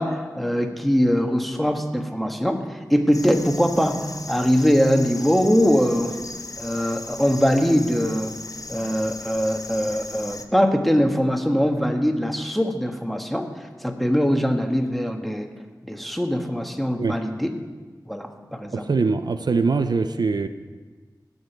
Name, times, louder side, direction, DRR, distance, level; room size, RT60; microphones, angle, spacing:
voice 1, 0.0-6.2 6.6-8.3 8.7-15.5 15.8-17.5 18.0-18.8, equal, ahead, 4 dB, 1.3 m, -22 dB
sound 1, 3.1-10.4, left 3 dB, 50° left, 0.8 m, -37 dB
voice 2, 18.7-20.5, right 4 dB, 70° right, 9 dB, 0.5 m, -22 dB
17.0 x 7.1 x 4.6 m, 1.4 s
wide cardioid pair, 45°, 7 cm